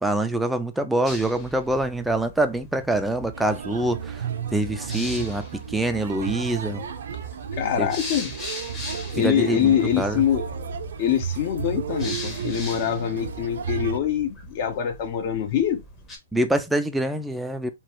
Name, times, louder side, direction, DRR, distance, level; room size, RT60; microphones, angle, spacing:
voice 1, 0.0-4.3 4.5-6.8 7.8-7.9 9.1-10.2 16.3-17.7, right 1 dB, 5° right, 0.4 m, -25 dB
sound 1, 1.1-16.2, left 1 dB, 15° left, 0.9 m, -41 dB
sound 2, 3.3-14.0, right 7 dB, 70° right, 0.5 m, -33 dB
voice 2, 7.5-8.3 9.1-10.4 11.0-15.8, left 10 dB, 45° left, 0.8 m, -24 dB
3.0 x 2.3 x 2.9 m
hypercardioid pair, 135°, 0 cm